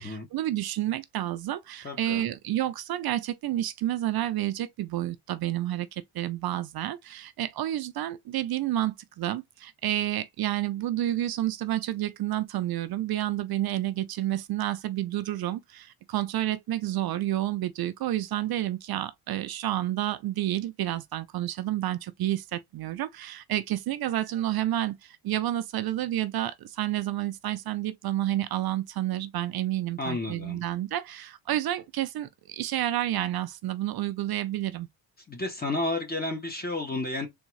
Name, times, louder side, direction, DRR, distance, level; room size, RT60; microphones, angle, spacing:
voice 1, 0.0-34.9, right 13 dB, 50° right, 0.5 m, -30 dB
voice 2, 1.8-2.2 30.0-30.6 35.3-37.3, left 2 dB, 20° left, 0.8 m, -31 dB
3.6 x 3.5 x 3.1 m
cardioid pair, 165°, 49 cm